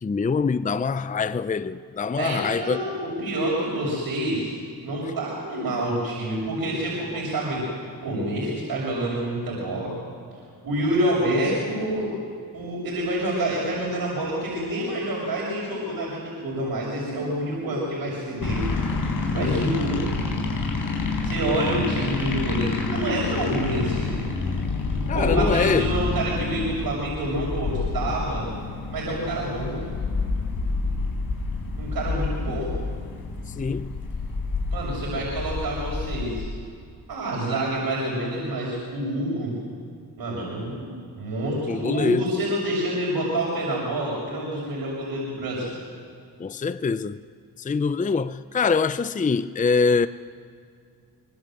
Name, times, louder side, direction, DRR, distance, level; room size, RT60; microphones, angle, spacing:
voice 1, 0.0-2.8 19.4-19.7 25.1-25.9 33.5-33.9 41.6-42.3 46.4-47.2 47.6-50.1, left 5 dB, 20° left, 0.6 m, -24 dB
voice 2, 2.2-4.5 4.8-7.6 8.0-9.9 10.6-12.1 12.5-18.7 19.3-20.0 21.2-24.1 25.1-28.4 28.9-29.8 31.8-32.7 34.7-36.4 37.1-39.5 40.2-45.7, right 1 dB, 65° right, 6.8 m, -27 dB
sound 1, 18.4-36.4, left 3 dB, 55° left, 4.9 m, -28 dB
25.0 x 21.0 x 7.8 m
cardioid pair, 75°, 39 cm